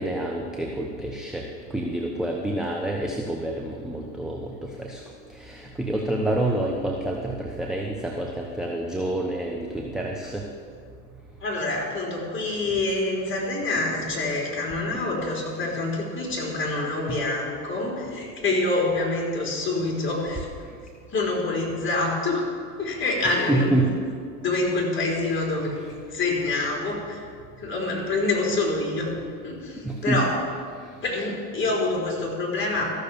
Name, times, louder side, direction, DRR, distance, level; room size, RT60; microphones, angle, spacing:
voice 1, 0.0-5.0 5.3-10.4 14.9-15.0 17.1-17.2 23.5-23.9 29.8-30.2, right 1 dB, ahead, 0 dB, 0.9 m, -28 dB
voice 2, 11.4-20.5 21.1-22.4 22.8-23.8 24.4-25.8 26.1-27.2 27.6-29.1 29.4-30.3 31.0-32.9, left 2 dB, 25° left, -2 dB, 3.8 m, -26 dB
14.0 x 6.7 x 6.9 m, 2.1 s
hypercardioid pair, 100°, 49 cm